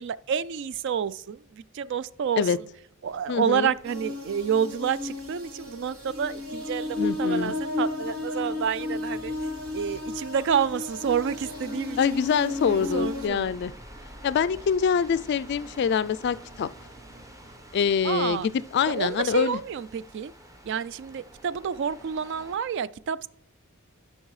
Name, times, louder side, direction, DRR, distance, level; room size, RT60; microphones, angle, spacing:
voice 1, 0.0-2.4 3.0-9.3 9.7-12.0 12.7-13.5 18.0-18.5 18.9-20.3 20.6-23.3, right 7 dB, 60° right, 0.3 m, -29 dB
sound 1, 3.1-22.6, right 1 dB, 15° right, 0.9 m, -49 dB
voice 2, 3.3-3.7 7.0-7.5 12.0-13.7 14.2-16.7 17.7-19.6, left 7 dB, 55° left, 0.3 m, -25 dB
sound 2, 3.8-13.3, left 2 dB, 80° right, 3.6 m, -33 dB
12.5 x 5.4 x 3.2 m
head